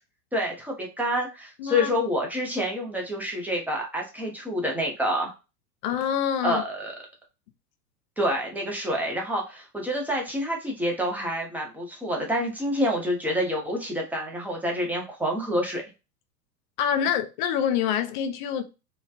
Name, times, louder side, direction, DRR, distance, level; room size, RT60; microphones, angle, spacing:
voice 1, 0.3-5.3 6.4-6.9 8.2-15.8, equal, 5° right, 0.7 m, -27 dB
voice 2, 1.6-1.9 5.8-6.6 16.8-18.6, left 8 dB, 35° left, 0.4 m, -26 dB
3.1 x 2.2 x 2.3 m
hypercardioid pair, 95°, 49 cm